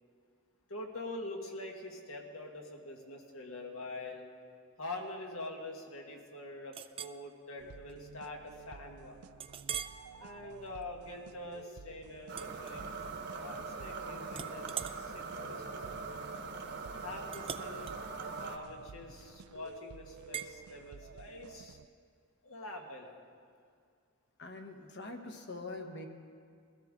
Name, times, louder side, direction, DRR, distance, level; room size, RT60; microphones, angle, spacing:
voice 1, 0.7-4.3 4.8-9.2 10.2-12.8 13.3-16.0 17.0-17.9 18.4-21.8 22.4-23.2, left 2 dB, 75° left, 1 dB, 1.8 m, -45 dB
Chink clink, 6.7-7.2 7.7-7.9 8.4-8.5 9.4-10.0 10.6-10.8 12.3-13.3 13.6-14.0 14.3-19.4 20.3-20.5, right 8 dB, 25° right, 0.3 m, -44 dB
sound 1, 7.6-21.9, right 6 dB, 90° right, 0.4 m, -53 dB
sound 2, 12.3-18.6, right 4 dB, 55° right, 1.1 m, -42 dB
voice 2, 24.4-26.1, left 2 dB, 55° left, 5 dB, 1.3 m, -44 dB
21.5 x 13.0 x 3.7 m, 2.2 s
head